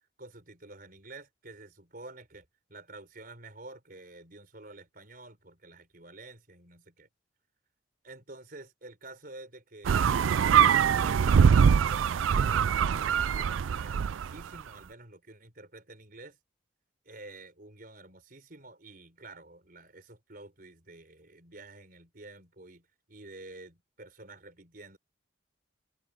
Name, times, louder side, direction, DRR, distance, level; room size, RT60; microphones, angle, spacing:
voice 1, 0.2-7.1 8.0-10.2 10.5-16.4 17.0-25.0, right 2 dB, 45° right, 4.5 m, -49 dB
sound 1, 9.8-14.4, right 7 dB, 85° right, 0.4 m, -23 dB
head